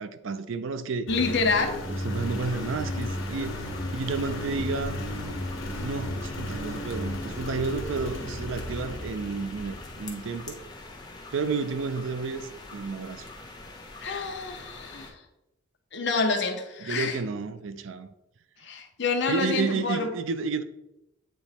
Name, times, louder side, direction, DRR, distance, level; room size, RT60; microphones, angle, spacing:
voice 1, 0.0-1.1 1.9-3.6 3.9-5.0 5.8-10.6 11.3-13.3 16.8-18.1 19.3-20.6, right 4 dB, 75° right, 0.5 m, -31 dB
Engine, 1.1-10.5, left 1 dB, 80° left, 1.2 m, -34 dB
voice 2, 1.1-1.8 14.0-15.2 15.9-17.2 18.6-20.1, left 4 dB, 60° left, 0.8 m, -27 dB
sound 1, 2.1-15.1, left 2 dB, 20° left, 0.9 m, -44 dB
sound 2, 4.5-8.2, equal, 5° left, 1.4 m, -48 dB
8.2 x 3.0 x 4.2 m
head